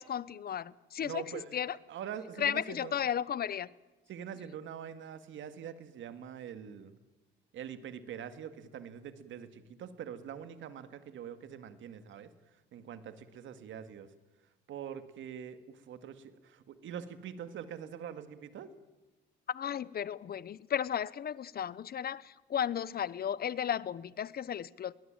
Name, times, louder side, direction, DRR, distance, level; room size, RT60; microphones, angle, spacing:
voice 1, 0.0-1.2 1.5-1.8 2.4-3.7 19.5-24.9, left 9 dB, 50° left, 0.9 m, -34 dB
voice 2, 1.0-1.6 1.9-3.0 4.1-7.0 7.5-12.3 12.7-14.1 14.7-18.7, right 8 dB, 75° right, 1.9 m, -44 dB
22.0 x 19.5 x 8.9 m
cardioid pair, 90°, 20 cm